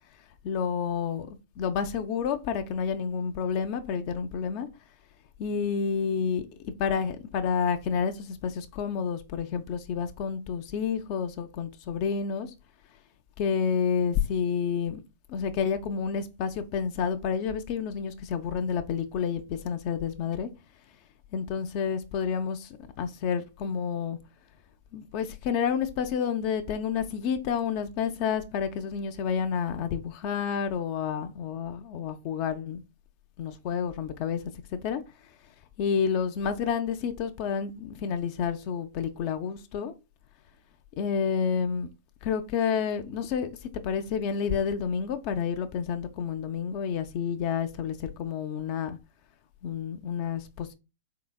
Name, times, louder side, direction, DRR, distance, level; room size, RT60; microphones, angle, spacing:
voice 1, 0.4-4.7 5.4-12.5 13.4-15.0 15.3-20.5 21.3-24.2 24.9-32.8 33.4-34.4 34.7-35.0 35.8-39.9 41.0-41.9 42.2-49.0 49.6-50.7, left 7 dB, 45° left, 0.4 m, -29 dB
3.8 x 3.4 x 2.2 m
hypercardioid pair, 115°, 0 cm